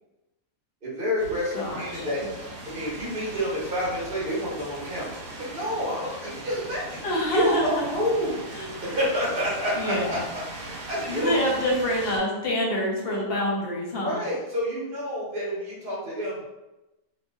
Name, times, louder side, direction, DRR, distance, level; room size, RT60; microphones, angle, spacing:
voice 1, 0.8-2.2 2.7-7.0 7.3-8.4 8.8-10.2 10.5-11.4 14.0-16.4, equal, 40° right, -6 dB, 1.2 m, -29 dB
sound 1, 1.2-12.2, right 2 dB, 70° right, 1.2 m, -40 dB
voice 2, 1.5-2.1 7.0-7.7 8.5-8.7 9.7-10.2 11.1-14.2, equal, 55° left, -3 dB, 0.8 m, -26 dB
2.9 x 2.9 x 2.3 m, 1.0 s
omnidirectional pair, 1.5 m